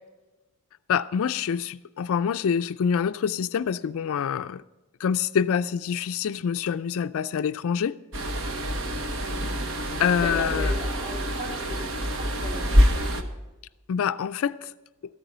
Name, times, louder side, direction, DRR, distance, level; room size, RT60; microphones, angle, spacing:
voice 1, 0.9-4.6 5.0-8.0 10.0-10.7 13.9-14.7, left 7 dB, 65° left, 0.3 m, -26 dB
sound 1, 8.1-13.2, equal, 60° right, 1.0 m, -25 dB
voice 2, 9.2-9.5 9.9-13.2, left 2 dB, 30° right, 2.8 m, -38 dB
13.5 x 9.0 x 5.5 m
head